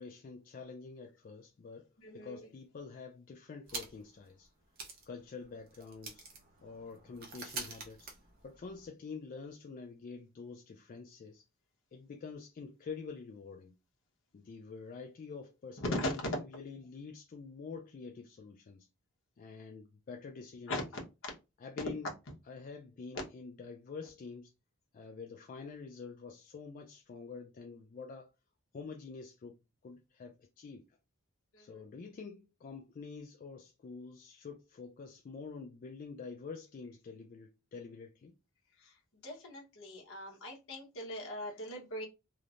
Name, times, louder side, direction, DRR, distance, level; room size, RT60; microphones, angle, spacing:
voice 1, 0.0-1.9 2.1-4.5 5.1-6.2 6.6-8.1 8.4-11.4 11.9-13.7 14.3-18.9 19.4-20.8 21.6-22.1 22.4-24.5 24.9-28.3 28.7-29.6 29.8-31.0 31.6-38.3, left 4 dB, 40° left, 0.3 m, -47 dB
voice 2, 2.0-2.5 15.8-16.1 20.7-20.8 31.5-31.8 38.8-38.9 39.2-42.1, left 1 dB, 60° left, 1.0 m, -39 dB
sound 1, 3.6-4.2 4.4-4.5 4.7-8.9, right 3 dB, 40° right, 0.6 m, -46 dB
3.1 x 2.0 x 2.4 m
head